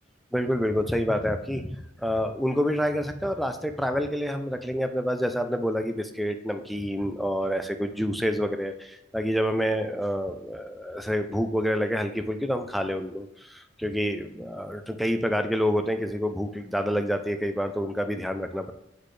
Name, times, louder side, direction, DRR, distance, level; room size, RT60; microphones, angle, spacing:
voice 1, 0.3-18.7, equal, ahead, 7 dB, 0.4 m, -28 dB
8.2 x 4.0 x 3.2 m, 0.87 s
head